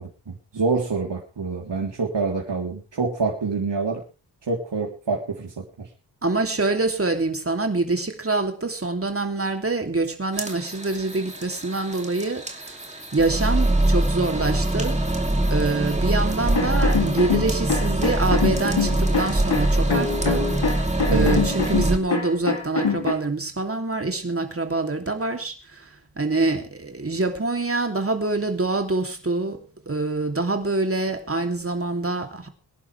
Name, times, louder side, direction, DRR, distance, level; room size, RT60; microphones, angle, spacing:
voice 1, 0.0-4.0 4.5-5.9 21.1-21.4, right 4 dB, 75° right, -3 dB, 3.5 m, -26 dB
voice 2, 6.2-12.7 13.1-15.0 15.5-20.5 21.1-25.8 26.2-32.5, right 3 dB, 30° right, 5 dB, 2.9 m, -25 dB
sound 1, 10.3-22.0, right 1 dB, 15° right, 2.7 m, -24 dB
sound 2, 16.5-23.1, left 5 dB, 75° left, 2.6 m, -25 dB
24.0 x 11.0 x 3.4 m, 0.31 s
wide cardioid pair, 100°, 43 cm